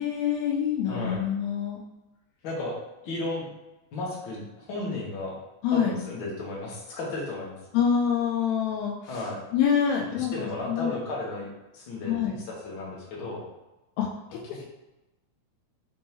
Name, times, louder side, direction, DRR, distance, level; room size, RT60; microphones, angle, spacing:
voice 1, 0.0-1.8 5.6-6.0 7.7-11.0 12.1-12.3 14.0-14.1, left 8 dB, 90° left, -2 dB, 1.6 m, -26 dB
voice 2, 0.9-1.2 2.4-2.8 3.0-3.5 3.9-5.4 5.7-7.5 9.1-9.4 10.2-11.5 11.7-13.4, left 2 dB, 60° left, -4 dB, 1.3 m, -34 dB
5.2 x 3.5 x 2.9 m, 1.0 s
omnidirectional pair, 3.8 m